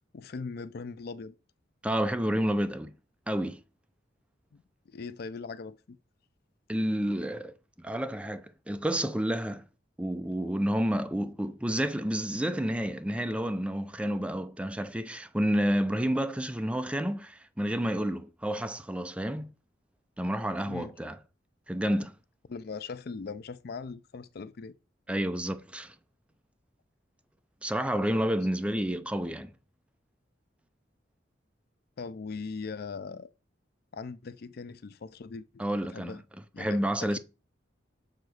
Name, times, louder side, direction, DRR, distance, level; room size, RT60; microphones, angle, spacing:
voice 1, 0.0-1.3 4.5-6.0 20.6-20.9 22.5-24.7 32.0-33.3 33.9-35.5 35.8-36.2 36.5-37.2, left 4 dB, 55° left, 0.4 m, -40 dB
voice 2, 1.8-2.9 3.3-3.6 6.7-9.6 10.0-19.5 20.2-21.2 21.7-22.1 25.1-25.9 27.6-29.5 35.6-36.2 36.6-37.2, equal, 5° right, 0.5 m, -30 dB
6.5 x 3.9 x 6.4 m
head